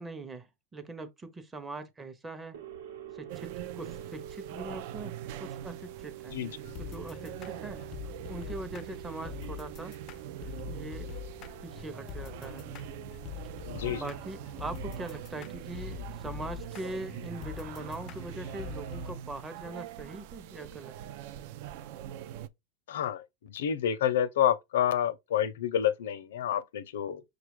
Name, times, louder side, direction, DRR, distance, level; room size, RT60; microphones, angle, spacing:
voice 1, 0.0-2.6 3.1-6.4 6.8-7.8 8.3-10.0 10.7-11.1 11.6-12.7 13.9-21.0, right 2 dB, 15° right, 0.7 m, -42 dB
sound 1, 2.5-13.4, right 12 dB, 90° right, 1.2 m, -47 dB
sound 2, 3.3-22.5, right 11 dB, 60° right, 0.4 m, -43 dB
sound 3, 6.6-19.1, left 12 dB, 35° left, 0.4 m, -44 dB
voice 2, 13.7-14.1 22.9-27.2, left 10 dB, 85° left, 0.5 m, -29 dB
6.1 x 2.3 x 3.1 m
supercardioid pair, 140°, 0 cm